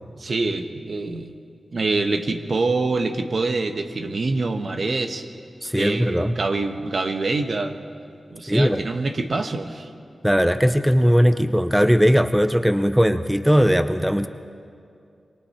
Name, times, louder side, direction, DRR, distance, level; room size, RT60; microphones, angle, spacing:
voice 1, 0.2-1.3 1.7-5.2 5.7-7.7 8.3-9.9, right 3 dB, 60° right, 6 dB, 1.3 m, -25 dB
voice 2, 5.6-6.4 8.5-8.8 10.2-14.3, equal, 5° right, 10 dB, 0.7 m, -19 dB
27.5 x 23.0 x 4.4 m, 2.4 s
cardioid pair, 65°, 0 cm